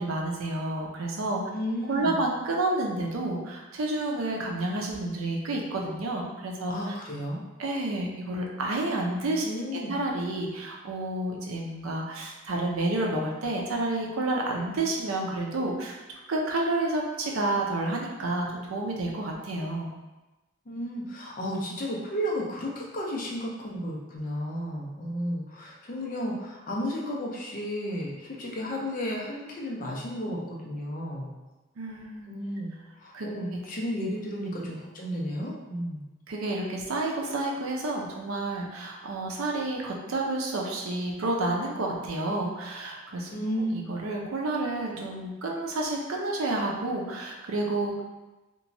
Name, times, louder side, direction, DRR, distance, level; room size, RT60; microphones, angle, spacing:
voice 1, 0.0-1.4 1.9-7.0 7.6-9.5 9.9-19.9 31.8-32.3 33.1-33.3 33.5-33.6 34.6-34.8 36.3-43.3 43.7-48.0, right 2 dB, 85° right, 0 dB, 0.5 m, -30 dB
voice 2, 1.5-2.2 6.7-7.4 9.4-10.0 20.7-31.3 32.3-36.0 43.3-43.8, equal, 40° left, -3 dB, 0.5 m, -33 dB
2.9 x 2.2 x 2.6 m, 1.1 s
head